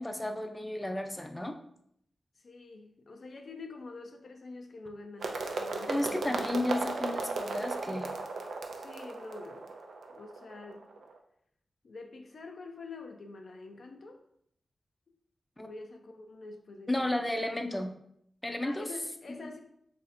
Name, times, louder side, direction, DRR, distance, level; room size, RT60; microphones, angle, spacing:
voice 1, 0.0-1.6 5.9-8.2 15.6-15.7 16.9-17.9 18.4-18.9, left 1 dB, 15° left, 5 dB, 0.5 m, -33 dB
voice 2, 2.4-6.3 8.8-9.7 10.1-10.8 11.8-14.2 15.6-17.1 18.6-19.6, left 3 dB, 70° left, 4 dB, 0.4 m, -46 dB
sound 1, 5.2-11.1, right 3 dB, 85° right, 0.4 m, -36 dB
3.1 x 2.6 x 4.2 m, 0.71 s
cardioid pair, 40°, 0 cm